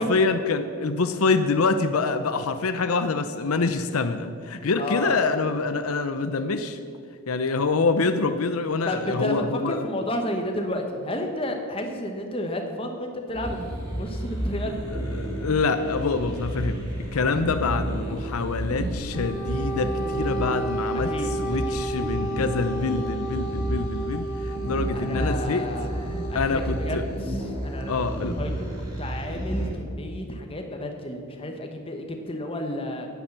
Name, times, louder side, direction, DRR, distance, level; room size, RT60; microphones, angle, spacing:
voice 1, 0.0-6.8 7.3-9.8 14.9-16.9 17.1-21.1 21.4-25.7 26.3-27.1 27.9-28.4, left 4 dB, 80° left, 9 dB, 0.6 m, -26 dB
voice 2, 4.8-5.1 8.9-13.6 13.9-14.7 20.9-21.8 24.9-27.0 27.6-28.0 28.4-28.7 29.0-33.1, left 1 dB, 25° left, 4 dB, 1.1 m, -31 dB
sound 1, 13.3-29.7, right 1 dB, 20° right, 2.6 m, -31 dB
Wind instrument woodwind instrument, 19.1-26.8, right 2 dB, 55° left, 2.4 m, -32 dB
10.0 x 9.4 x 7.1 m, 2.3 s
head